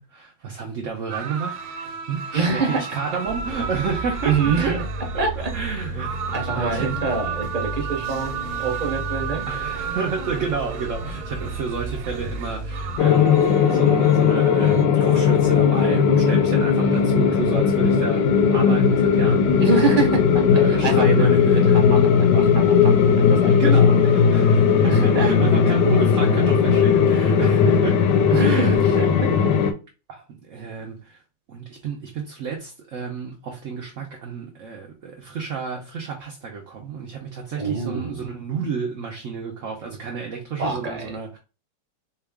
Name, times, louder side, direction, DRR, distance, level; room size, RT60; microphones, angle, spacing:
voice 1, 0.0-4.8 5.1-6.9 9.5-19.6 20.5-21.8 23.6-28.1 28.4-28.9 30.1-31.2 31.5-41.4, right 5 dB, 60° right, 0.8 m, -31 dB
sound 1, 1.1-14.8, right 7 dB, 85° right, 1.3 m, -34 dB
voice 2, 2.3-2.8 4.2-4.7 5.2-5.5 6.3-9.4 16.8-17.2 19.6-23.9 24.9-25.3 28.3-29.3 30.6-30.7 37.6-38.3 40.6-41.2, right 4 dB, 35° right, 1.0 m, -26 dB
sound 2, 3.3-13.0, right 2 dB, 10° right, 0.8 m, -33 dB
sound 3, 13.0-29.7, left 6 dB, 80° left, 1.3 m, -17 dB
4.6 x 2.3 x 3.4 m
omnidirectional pair, 2.0 m